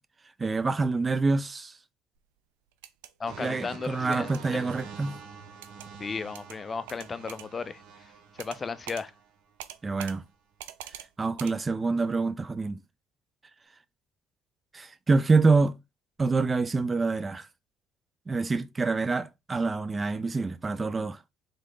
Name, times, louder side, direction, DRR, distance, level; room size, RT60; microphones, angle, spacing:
voice 1, 0.4-1.7 3.4-5.2 9.8-10.2 11.2-12.8 14.7-15.8 16.2-17.5 18.3-21.2, right 3 dB, 25° right, 0.4 m, -26 dB
sound 1, 2.7-3.1 4.1-4.4 5.6-5.9 6.3-6.6 6.9-7.5 8.4-8.6 8.9-9.0 9.6-10.2 10.6-11.1 11.4-11.5, right 12 dB, 90° right, 0.4 m, -43 dB
voice 2, 3.2-4.6 6.0-7.8 8.3-9.1, left 5 dB, 30° left, 0.5 m, -35 dB
sound 2, 3.3-9.3 10.0-10.3, right 6 dB, 65° right, 1.0 m, -46 dB
3.9 x 3.2 x 3.8 m
supercardioid pair, 75°, 0 cm